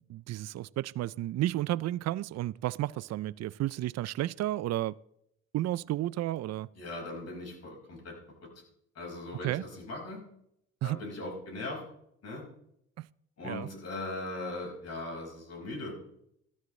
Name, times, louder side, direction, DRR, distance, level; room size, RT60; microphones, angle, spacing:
voice 1, 0.0-5.0 5.5-6.7 9.4-9.6 10.8-11.0 13.0-13.1 13.4-13.7, right 15 dB, 60° right, 0.4 m, -32 dB
voice 2, 6.7-8.1 8.4-8.5 8.9-10.2 10.8-11.8 12.2-12.4 13.4-15.9, left 2 dB, 55° left, 5.1 m, -39 dB
15.0 x 13.0 x 3.2 m
cardioid pair, 90°, 30 cm